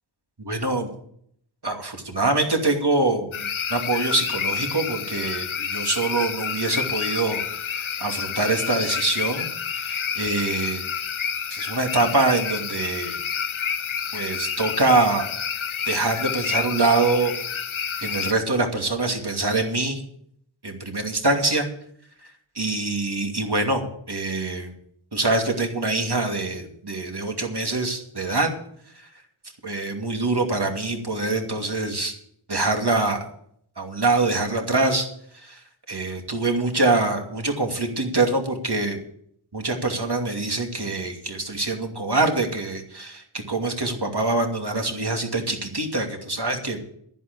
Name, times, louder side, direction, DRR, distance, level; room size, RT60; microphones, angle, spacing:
voice 1, 0.4-0.9 1.6-9.5 9.8-10.8 11.5-13.2 14.1-15.3 15.8-17.3 18.0-20.0 20.6-21.7 22.5-24.7 25.1-28.5 29.6-32.1 32.5-33.3 33.8-35.1 35.3-35.6 35.9-39.0 39.5-46.8, right 2 dB, 55° right, 3 dB, 2.6 m, -24 dB
sound 1, 3.3-18.3, left 7 dB, 85° left, 0.8 m, -29 dB
11.0 x 11.0 x 6.8 m, 0.67 s
wide cardioid pair, 40°, 47 cm